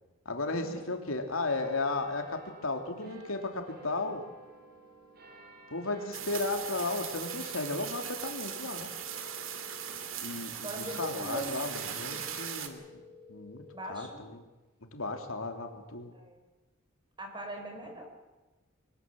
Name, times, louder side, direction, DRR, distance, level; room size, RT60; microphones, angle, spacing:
voice 1, 0.2-4.2 5.7-8.9 10.2-12.8 13.3-13.6 13.9-14.4 14.9-16.1, left 3 dB, 90° left, 5 dB, 2.9 m, -34 dB
sound 1, 1.4-14.3 14.9-15.0, right 3 dB, 50° right, 4.1 m, -55 dB
sound 2, 6.1-12.7, right 8 dB, 70° right, 2.3 m, -39 dB
sound 3, 8.1-10.1 12.1-14.1, left 4 dB, 25° left, 5.4 m, -53 dB
voice 2, 10.6-12.3 13.7-14.2 16.1-16.4 17.2-18.0, right 1 dB, 25° right, 3 dB, 5.0 m, -41 dB
23.0 x 19.5 x 7.6 m, 1.1 s
head